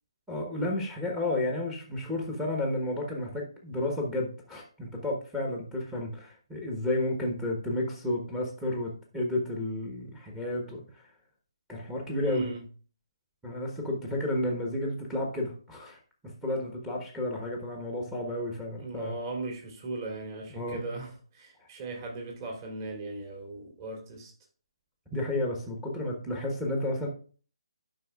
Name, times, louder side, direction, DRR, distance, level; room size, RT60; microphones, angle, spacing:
voice 1, 0.3-11.0 11.7-12.5 13.4-19.1 20.5-20.8 21.6-21.7 25.1-27.1, left 1 dB, 5° right, 0 dB, 1.2 m, -32 dB
voice 2, 12.2-12.6 18.7-24.3, right 2 dB, 35° right, -1 dB, 3.3 m, -38 dB
11.5 x 5.5 x 2.4 m, 0.40 s
hypercardioid pair, 155°, 3 cm